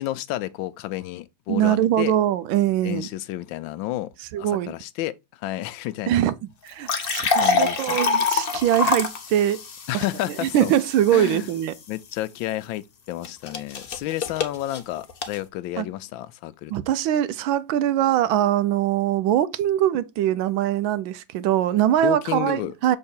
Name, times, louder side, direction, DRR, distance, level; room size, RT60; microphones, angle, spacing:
voice 1, 0.0-2.1 2.8-4.1 4.4-6.2 7.4-8.0 9.9-10.7 11.1-11.5 11.9-16.7 22.0-22.7, left 15 dB, 80° left, 1.3 m, -31 dB
voice 2, 1.5-3.1 4.3-4.7 6.1-6.3 6.6-9.6 9.9-10.0 10.4-11.7 15.8-15.9 16.7-23.0, right 11 dB, 85° right, 1.4 m, -22 dB
sound 1, 6.7-11.8 13.2-15.4, left 4 dB, 55° left, 0.6 m, -26 dB
6.6 x 3.8 x 4.2 m
omnidirectional pair, 2.2 m